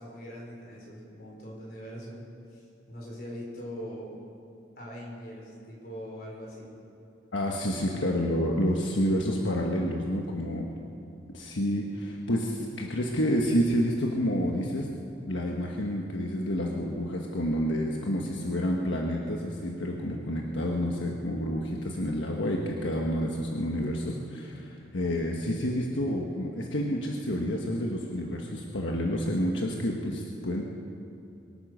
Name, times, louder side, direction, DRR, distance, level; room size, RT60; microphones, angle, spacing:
voice 1, 0.0-2.2 2.5-2.6 2.9-4.2 4.8-6.7, equal, 50° left, -3 dB, 4.6 m, -41 dB
voice 2, 7.3-10.7 11.3-14.9 15.2-30.6, equal, 85° left, 0 dB, 1.3 m, -29 dB
23.5 x 9.2 x 6.3 m, 2.8 s
head